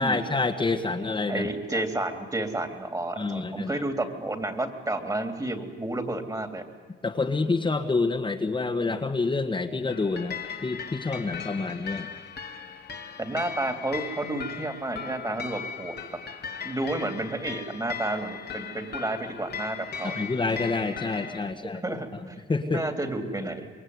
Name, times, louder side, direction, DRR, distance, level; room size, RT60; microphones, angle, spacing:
voice 1, 0.0-1.5 1.7-1.8 3.2-3.8 7.0-12.1 20.0-22.2 22.5-22.8, left 3 dB, 25° left, 3 dB, 1.7 m, -28 dB
voice 2, 1.3-6.7 13.2-16.2 16.6-20.3 21.8-22.4 22.7-23.7, right 2 dB, 20° right, 7 dB, 3.2 m, -31 dB
sound 1, 9.9-21.5, left 6 dB, 55° left, 2.1 m, -38 dB
26.5 x 22.5 x 9.6 m, 1.4 s
cardioid pair, 90°, 20 cm